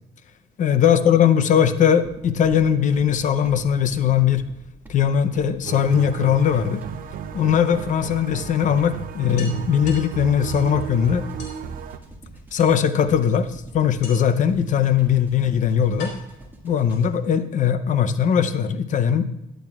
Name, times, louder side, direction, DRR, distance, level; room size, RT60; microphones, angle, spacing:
voice 1, 0.6-4.4 4.9-6.8 7.3-11.3 12.5-16.1 16.6-19.3, left 8 dB, 50° left, 12 dB, 0.6 m, -20 dB
sound 1, 2.0-17.3, right 1 dB, 10° right, 1.8 m, -46 dB
sound 2, 5.7-12.0, right 8 dB, 55° right, 0.7 m, -34 dB
sound 3, 7.9-8.0 8.4-8.5 8.8-8.9 9.4-10.8 11.4-11.6 12.6-13.1 14.0-14.5 15.3-15.4 16.0-17.3, left 4 dB, 85° left, 2.9 m, -42 dB
13.0 x 10.5 x 2.4 m, 0.87 s
cardioid pair, 110°, 17 cm